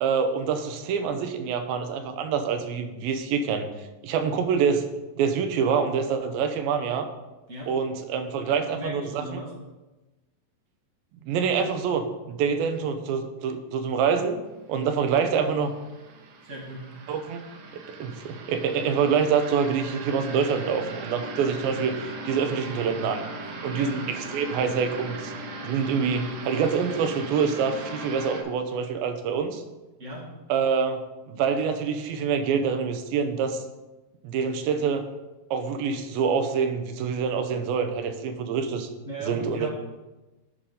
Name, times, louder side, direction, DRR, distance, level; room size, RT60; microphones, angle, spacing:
voice 1, 0.0-3.7 4.0-4.8 5.2-7.1 7.7-9.4 11.2-14.4 14.7-15.8 17.1-17.4 17.7-23.3 23.6-25.3 25.6-29.6 30.5-33.6 34.2-35.1 35.5-38.9 39.2-39.7, right 6 dB, 85° right, 7 dB, 2.6 m, -26 dB
voice 2, 8.5-9.5 16.4-16.8 23.7-23.9 30.0-30.2 39.0-39.7, right 1 dB, 35° right, -3 dB, 1.2 m, -36 dB
sound 1, 14.9-28.4, right 2 dB, 70° right, 2.4 m, -39 dB
11.0 x 4.3 x 5.2 m, 1.1 s
omnidirectional pair, 4.1 m